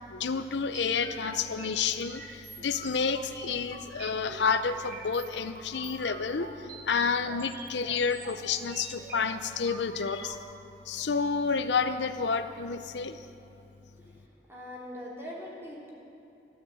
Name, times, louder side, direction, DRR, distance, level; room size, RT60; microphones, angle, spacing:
voice 1, 0.1-10.4 10.9-13.2, left 5 dB, 80° left, 10 dB, 0.6 m, -30 dB
sound 1, 0.7-10.4, right 3 dB, 55° right, 1.5 m, -46 dB
voice 2, 14.5-15.9, left 1 dB, 15° right, -4 dB, 3.1 m, -42 dB
13.5 x 13.5 x 7.7 m, 2.9 s
head